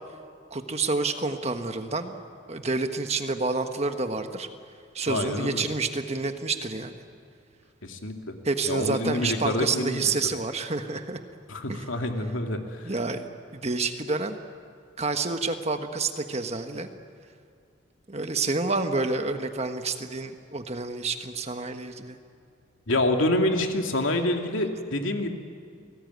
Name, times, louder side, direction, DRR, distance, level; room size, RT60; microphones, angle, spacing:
voice 1, 0.5-2.2 2.5-4.5 4.9-7.0 8.4-11.2 11.7-11.8 12.8-14.4 15.0-16.9 18.1-22.2, right 3 dB, 30° right, 7 dB, 1.4 m, -29 dB
voice 2, 5.1-5.7 7.8-8.4 8.6-10.1 11.5-12.9 22.9-25.3, left 1 dB, 75° left, 4 dB, 2.5 m, -27 dB
28.5 x 19.0 x 9.5 m, 2.3 s
head